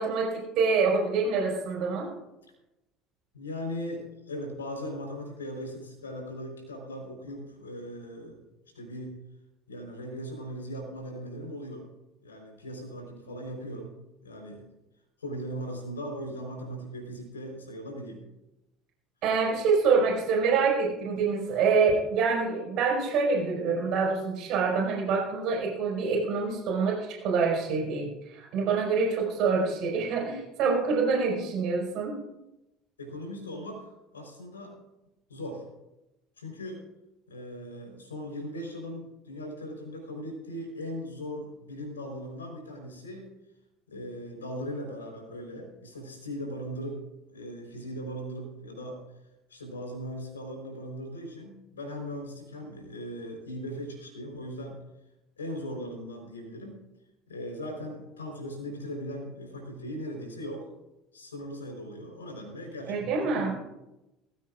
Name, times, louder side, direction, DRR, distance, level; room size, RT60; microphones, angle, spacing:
voice 1, 0.0-2.1 19.2-32.2 62.9-63.5, right 5 dB, 50° right, -1 dB, 5.4 m, -26 dB
voice 2, 3.3-8.4 8.7-9.2 9.7-11.9 12.2-13.9 14.2-14.7 15.2-18.2 33.0-34.8 35.3-35.6 36.4-36.8 37.3-43.3 43.9-47.0 47.3-49.0 49.5-54.8 55.4-56.8 57.3-60.7 61.1-63.5, equal, 75° left, 1 dB, 4.1 m, -39 dB
21.0 x 15.5 x 2.5 m, 0.94 s
figure-of-eight pair, 65°, 0 cm